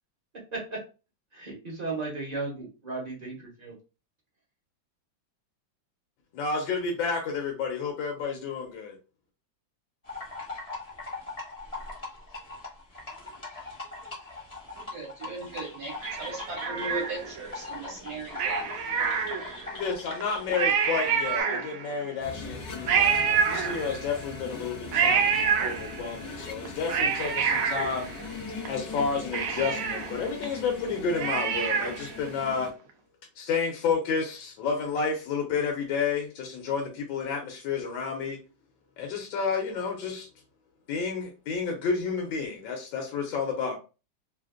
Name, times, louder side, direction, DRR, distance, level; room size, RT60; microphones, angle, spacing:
voice 1, 1.3-3.7, right 3 dB, 35° right, -4 dB, 0.7 m, -35 dB
voice 2, 6.3-9.0 19.7-28.1 28.7-32.7 33.4-38.4 39.0-40.3 40.9-43.7, left 5 dB, 80° left, 1 dB, 1.4 m, -30 dB
sound 1, 10.0-21.4, left 3 dB, 30° left, 0.7 m, -41 dB
voice 3, 14.7-18.7, right 3 dB, 60° right, -3 dB, 1.2 m, -37 dB
Cat, 16.0-17.5 18.3-19.7 20.2-20.3 20.5-22.0 22.9-24.2 24.9-26.2 26.6-28.7 29.0-29.1 29.3-32.1 32.5-32.6, right 6 dB, 85° right, 0.7 m, -27 dB
sound 2, 22.2-32.7, left 4 dB, 65° left, 1.1 m, -41 dB
3.3 x 2.5 x 2.4 m, 0.32 s
omnidirectional pair, 2.1 m